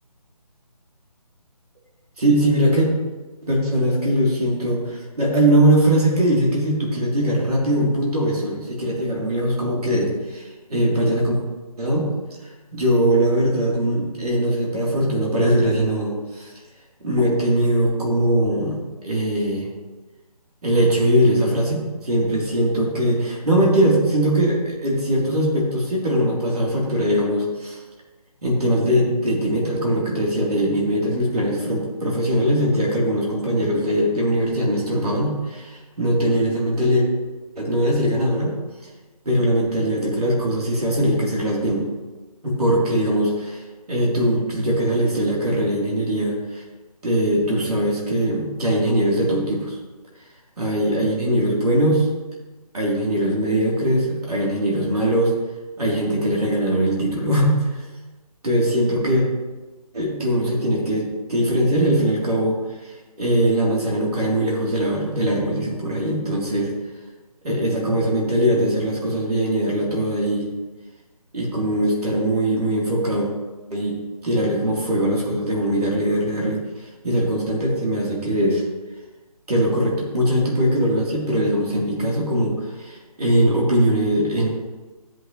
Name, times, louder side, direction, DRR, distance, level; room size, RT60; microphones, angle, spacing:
voice 1, 2.2-2.9 3.4-11.4 11.8-12.1 12.7-16.5 17.0-19.7 20.6-27.8 28.4-37.1 37.6-38.5 39.2-41.9 42.4-43.6 43.9-46.6 47.0-49.7 50.6-52.0 52.7-55.3 55.8-57.8 58.4-59.2 59.9-62.6 63.2-66.7 67.4-70.5 71.3-73.3 73.7-76.6 77.0-78.6 79.5-84.5, right 1 dB, 75° right, -3 dB, 3.4 m, -21 dB
13.5 x 7.9 x 3.2 m, 1.2 s
figure-of-eight pair, 160°, 20 cm